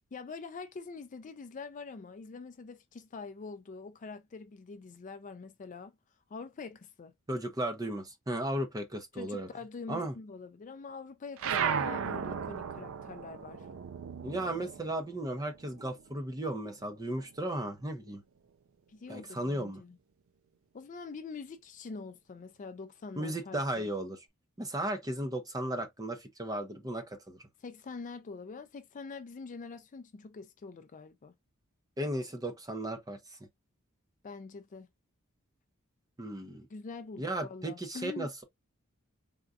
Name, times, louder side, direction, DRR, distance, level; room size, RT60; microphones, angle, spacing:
voice 1, 0.1-5.9 6.3-7.1 9.1-13.7 18.9-20.0 20.7-23.9 27.6-31.3 34.2-34.9 36.7-38.3, left 4 dB, 35° left, 0.4 m, -45 dB
voice 2, 7.3-9.5 9.9-10.1 14.2-18.2 19.1-19.8 23.2-24.2 24.6-27.4 32.0-33.4 36.2-36.7 37.2-38.4, right 1 dB, 15° right, 0.6 m, -35 dB
sound 1, 11.4-16.2 16.6-18.0, right 7 dB, 65° right, 0.4 m, -36 dB
3.6 x 2.3 x 2.4 m
head